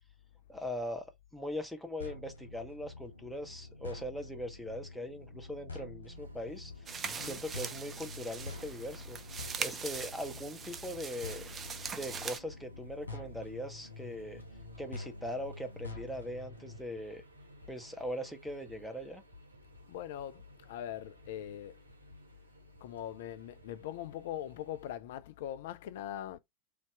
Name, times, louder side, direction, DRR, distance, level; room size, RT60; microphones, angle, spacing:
voice 1, 0.5-1.0 1.3-6.9 7.2-9.2 9.6-11.5 11.9-14.4 14.8-17.2 17.7-19.2, equal, ahead, 0.8 m, -40 dB
sound 1, 2.0-16.8, left 2 dB, 80° left, 0.8 m, -47 dB
sound 2, 6.1-25.0, left 1 dB, 80° right, 0.7 m, -57 dB
voice 2, 6.7-7.5 19.9-21.8 22.8-26.4, left 11 dB, 55° left, 0.4 m, -42 dB
sound 3, 6.9-12.4, right 6 dB, 20° right, 0.5 m, -41 dB
3.2 x 2.8 x 4.4 m
figure-of-eight pair, 90°, 0 cm